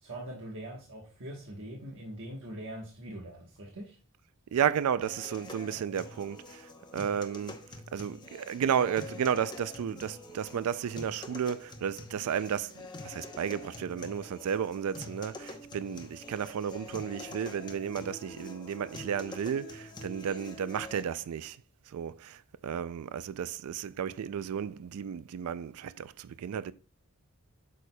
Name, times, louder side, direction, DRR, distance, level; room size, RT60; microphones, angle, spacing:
voice 1, 0.0-4.0, right 1 dB, 60° right, 1.2 m, -42 dB
voice 2, 4.5-7.6 7.9-21.6 21.9-26.7, right 8 dB, 80° right, 0.3 m, -33 dB
sound 1, 5.0-21.0, left 2 dB, 20° left, 0.8 m, -46 dB
8.4 x 6.5 x 2.2 m
head